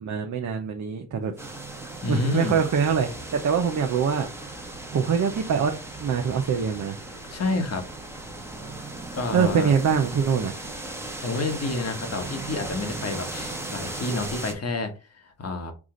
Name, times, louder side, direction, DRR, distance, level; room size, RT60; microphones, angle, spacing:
voice 1, 0.0-1.5 2.1-4.3 4.9-5.7 6.0-7.0 9.3-10.5, right 6 dB, 45° right, 0.7 m, -24 dB
sound 1, 1.4-14.5, right 2 dB, 5° right, 1.1 m, -37 dB
voice 2, 2.0-2.6 7.3-7.8 9.1-9.7 11.2-15.7, left 3 dB, 35° left, 1.2 m, -29 dB
4.9 x 2.5 x 3.8 m
cardioid pair, 75°, 41 cm